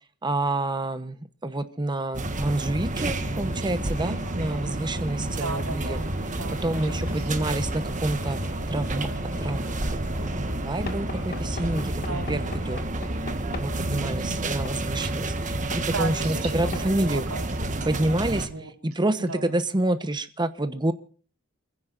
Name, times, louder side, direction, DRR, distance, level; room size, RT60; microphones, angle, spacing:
voice 1, 0.2-1.2 1.4-6.0 6.6-8.4 8.7-9.1 9.4-9.7 10.3-12.8 13.6-17.3 17.8-18.5 18.8-20.9, right 1 dB, 20° right, 10 dB, 0.9 m, -28 dB
sound 1, 2.1-18.5, right 1 dB, 35° right, 1.4 m, -30 dB
sound 2, 3.1-12.9, left 1 dB, 80° left, 4.4 m, -44 dB
voice 2, 4.0-4.8 5.3-7.5 12.0-12.5 13.8-14.5 15.8-16.7 17.1-17.7 18.4-18.7 19.3-19.6, right 3 dB, 80° right, 2 dB, 4.8 m, -36 dB
Knock / Wood, 10.9-13.8 14.7-14.8 15.7-15.9 16.7-16.9, left 3 dB, 45° left, 2.0 m, -39 dB
29.0 x 16.0 x 2.6 m, 0.41 s
head